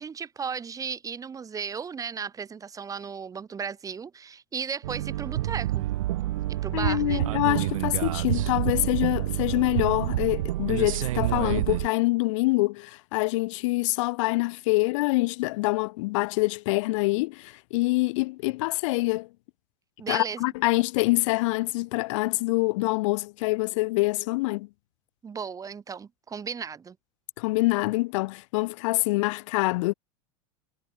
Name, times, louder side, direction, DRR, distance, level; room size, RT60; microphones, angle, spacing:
voice 1, 0.0-5.9 6.6-7.2 20.0-20.4 25.2-27.0, right 6 dB, 20° right, 4.3 m, -35 dB
sound 1, 4.8-11.9, right 15 dB, 80° right, 1.4 m, -28 dB
voice 2, 6.7-19.3 20.1-24.7 27.4-29.9, left 23 dB, 65° left, 3.3 m, -25 dB
supercardioid pair, 125°, 17 cm